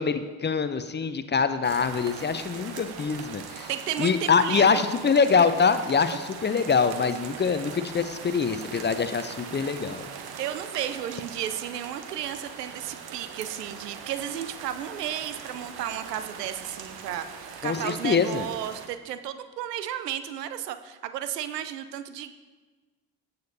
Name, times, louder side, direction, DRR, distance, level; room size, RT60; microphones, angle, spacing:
voice 1, 0.0-3.7 4.0-10.1 17.6-18.4, left 5 dB, 25° left, 11 dB, 0.6 m, -24 dB
sound 1, 1.6-18.9, right 6 dB, 50° right, 1.1 m, -41 dB
voice 2, 3.7-4.8 10.4-22.3, right 10 dB, 85° right, 11 dB, 0.6 m, -33 dB
16.0 x 6.6 x 2.8 m, 1.3 s
figure-of-eight pair, 45°, 47 cm